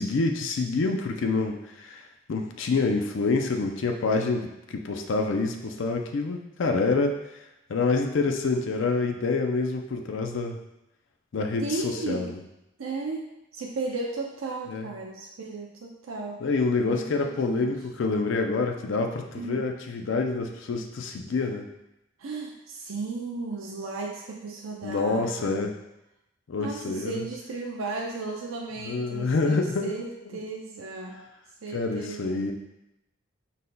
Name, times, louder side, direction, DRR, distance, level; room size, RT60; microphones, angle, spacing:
voice 1, 0.0-2.0 2.3-7.4 7.7-10.6 11.3-12.4 14.7-14.9 16.4-21.7 24.8-25.7 26.5-27.3 28.8-30.4 31.7-32.5, left 3 dB, 60° left, 3 dB, 0.4 m, -27 dB
voice 2, 11.6-12.3 12.8-13.2 13.5-16.4 16.9-17.7 19.4-19.6 22.2-25.8 26.6-31.2 31.6-32.4, right 3 dB, 75° right, -1 dB, 0.5 m, -35 dB
5.1 x 4.1 x 2.2 m, 0.90 s
head